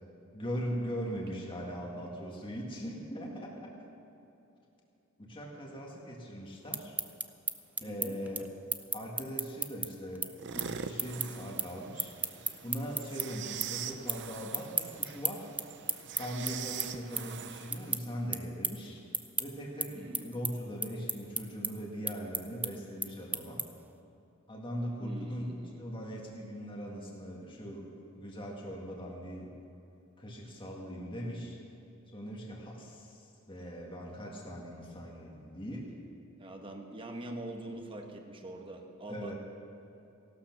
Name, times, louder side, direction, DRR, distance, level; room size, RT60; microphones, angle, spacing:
voice 1, 0.3-3.8 5.2-7.0 7.8-8.5 8.9-12.1 12.6-15.5 16.2-19.0 19.4-23.6 24.5-25.4 25.8-29.6 30.2-31.6 32.1-35.9 39.1-39.4, equal, 25° left, -2 dB, 1.8 m, -40 dB
sound 1, 6.5-13.3 13.6-14.2 14.5-23.9, right 3 dB, 10° right, 0.4 m, -35 dB
voice 2, 7.8-8.2 19.9-20.3 25.0-25.8 36.4-39.3, right 1 dB, 25° right, 3 dB, 1.2 m, -44 dB
sound 2, 10.4-18.0, right 7 dB, 55° right, 0.7 m, -43 dB
16.0 x 12.0 x 6.1 m, 2.8 s
head